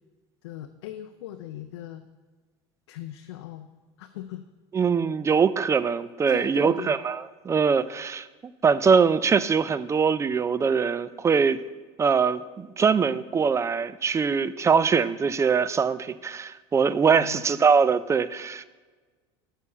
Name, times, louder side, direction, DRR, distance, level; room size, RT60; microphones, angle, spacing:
voice 1, 0.4-2.0 2.9-3.7 4.0-4.4 6.3-7.0 17.1-17.6, left 12 dB, 90° left, 7 dB, 0.4 m, -39 dB
voice 2, 4.7-8.3 8.6-11.6 12.0-18.6, right 6 dB, 20° right, 16 dB, 0.3 m, -22 dB
6.5 x 5.5 x 7.0 m, 1.4 s
supercardioid pair, 95°, 14 cm